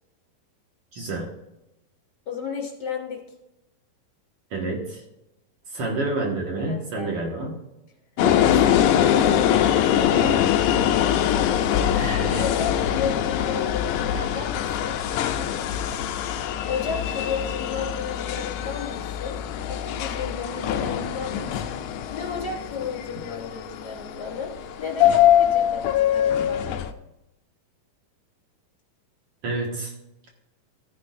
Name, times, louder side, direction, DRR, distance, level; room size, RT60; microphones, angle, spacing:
voice 1, 0.9-1.3 4.5-5.0 5.7-7.6 8.2-8.7 11.9-12.4 29.4-29.9, right 2 dB, 50° right, 0 dB, 2.2 m, -29 dB
voice 2, 2.2-3.2 6.7-7.1 9.0-10.4 12.4-15.7 16.6-19.4 19.6-26.8, left 5 dB, 30° left, -1 dB, 3.3 m, -33 dB
sound 1, 8.2-26.9, left 10 dB, 80° left, 1.8 m, -23 dB
15.0 x 9.6 x 2.6 m, 0.90 s
omnidirectional pair, 4.2 m